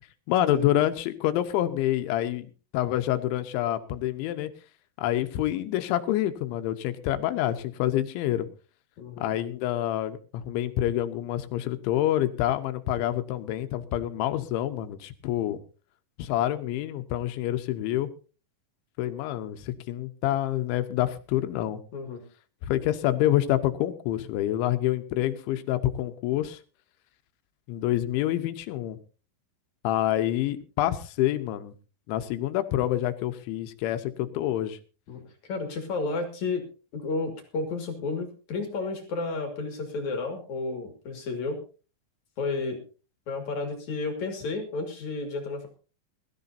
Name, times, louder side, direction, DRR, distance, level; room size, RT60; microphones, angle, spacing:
voice 1, 0.3-2.5 2.7-4.5 5.0-8.5 9.2-15.6 16.2-18.1 19.0-21.8 22.7-26.6 27.7-29.0 29.8-31.7 32.1-34.8, left 13 dB, 85° left, 9 dB, 3.3 m, -27 dB
voice 2, 9.0-9.3 21.9-22.2 35.1-35.2 35.5-36.6 36.9-41.6 42.4-42.8 43.3-45.7, left 3 dB, 50° left, 5 dB, 2.9 m, -32 dB
21.5 x 14.0 x 2.7 m, 0.35 s
omnidirectional pair, 5.3 m